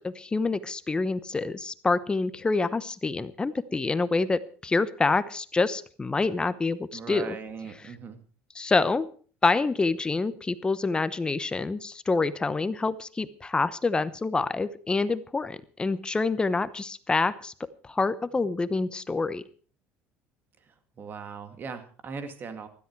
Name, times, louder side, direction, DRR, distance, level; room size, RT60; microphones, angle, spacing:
voice 1, 0.0-7.4 7.8-7.9 8.5-9.1 9.4-17.5 17.8-19.4, left 3 dB, 15° left, 15 dB, 0.9 m, -27 dB
voice 2, 6.9-8.2 21.0-22.7, right 5 dB, 40° right, 9 dB, 2.3 m, -39 dB
16.5 x 13.0 x 4.7 m, 0.42 s
cardioid pair, 115°, 5 cm